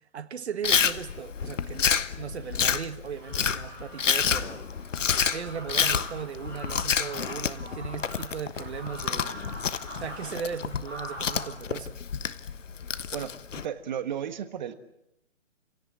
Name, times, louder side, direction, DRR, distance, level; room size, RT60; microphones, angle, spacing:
voice 1, 0.1-4.7 5.2-9.5 10.0-12.0, right 7 dB, 60° right, 1.6 m, -37 dB
Chewing mastication, 0.6-13.6, left 7 dB, 75° left, 1.3 m, -29 dB
sound 1, 3.1-11.4, equal, 5° left, 6.9 m, -44 dB
voice 2, 13.1-14.7, right 9 dB, 35° right, 1.4 m, -34 dB
30.0 x 17.0 x 8.9 m
hypercardioid pair, 155°, 38 cm